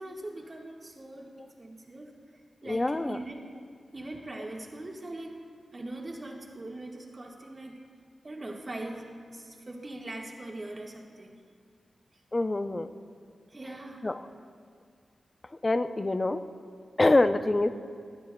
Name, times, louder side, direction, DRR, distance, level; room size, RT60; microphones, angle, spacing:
voice 1, 0.0-2.1 2.6-3.4 3.9-5.4 5.7-7.8 8.2-11.4 13.5-14.1, right 2 dB, 40° right, 1 dB, 1.5 m, -41 dB
voice 2, 2.6-3.2 12.3-12.9 14.0-14.2 15.5-16.4 17.0-17.7, left 2 dB, 30° left, 10 dB, 0.5 m, -25 dB
20.5 x 9.5 x 2.3 m, 2.1 s
cardioid pair, 60°, 0 cm